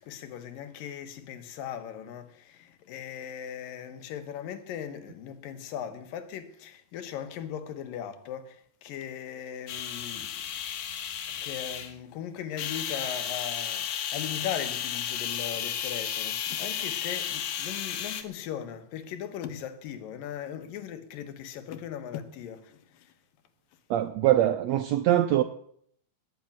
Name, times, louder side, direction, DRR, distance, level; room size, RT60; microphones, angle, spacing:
voice 1, 0.0-10.5 11.3-23.1, left 9 dB, 85° left, 2.9 m, -39 dB
sound 1, 9.7-12.0 12.6-18.2, left 9 dB, 70° left, 2.5 m, -33 dB
voice 2, 23.9-25.4, right 13 dB, 80° right, 1.5 m, -23 dB
19.0 x 6.6 x 8.8 m
omnidirectional pair, 3.9 m